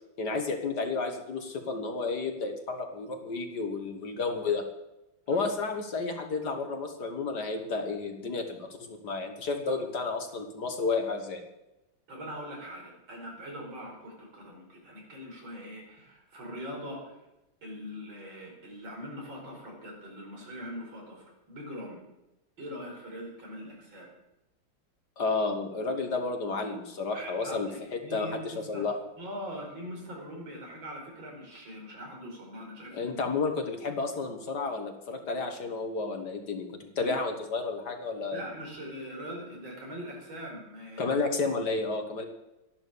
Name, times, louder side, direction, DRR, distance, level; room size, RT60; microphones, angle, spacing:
voice 1, 0.2-4.6 5.3-11.4 25.2-29.0 32.9-38.4 41.0-42.2, left 4 dB, 55° left, 5 dB, 2.2 m, -31 dB
voice 2, 12.1-17.2 17.6-22.0 22.6-24.1 27.1-28.9 29.2-33.2 37.0-37.2 38.3-41.2, equal, 70° right, -1 dB, 5.4 m, -42 dB
13.5 x 11.0 x 6.9 m, 0.95 s
omnidirectional pair, 2.2 m